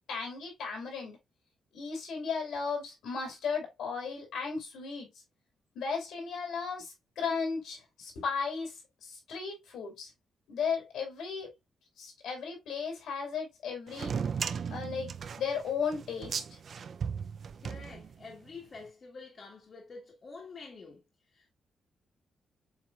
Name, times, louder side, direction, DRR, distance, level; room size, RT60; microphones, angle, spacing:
voice 1, 0.1-1.2 1.7-5.1 5.7-10.1 10.5-11.5 12.0-14.1 14.7-16.4, left 5 dB, 90° left, 3.0 m, -35 dB
sound 1, 13.9-18.5, right 6 dB, 55° right, 0.4 m, -36 dB
voice 2, 17.6-21.0 21.3-21.5, left 4 dB, 45° left, 1.3 m, -48 dB
7.2 x 3.0 x 2.3 m
cardioid pair, 100°, 0 cm